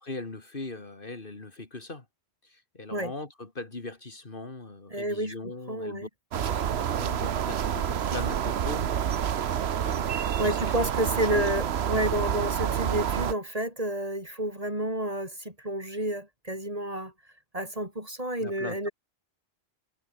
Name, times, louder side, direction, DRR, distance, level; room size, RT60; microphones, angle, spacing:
voice 1, 0.0-2.1 2.4-6.1 6.5-9.5 9.8-10.8 11.3-11.5 18.4-18.9, left 2 dB, 50° left, 2.7 m, -40 dB
voice 2, 4.9-5.3 5.7-6.1 10.4-17.1 17.5-18.9, right 1 dB, 35° right, 5.6 m, -30 dB
sound 1, 6.3-13.3, right 9 dB, 70° right, 1.1 m, -28 dB
omnidirectional pair, 1.1 m